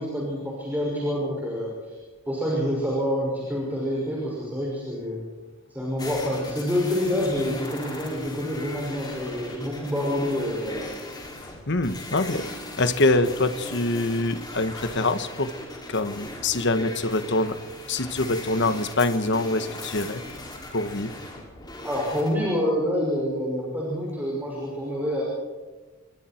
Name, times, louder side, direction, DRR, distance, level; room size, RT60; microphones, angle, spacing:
voice 1, 0.0-1.9 2.3-5.2 5.7-10.9 21.8-25.2, equal, 10° right, -4 dB, 6.0 m, -27 dB
sound 1, 6.0-22.3, left 2 dB, 20° left, 5.6 m, -38 dB
voice 2, 11.7-12.4 12.8-15.5 15.9-17.6 17.9-20.2 20.7-21.1, left 2 dB, 55° left, 10 dB, 1.4 m, -24 dB
29.0 x 23.5 x 4.5 m, 1.3 s
head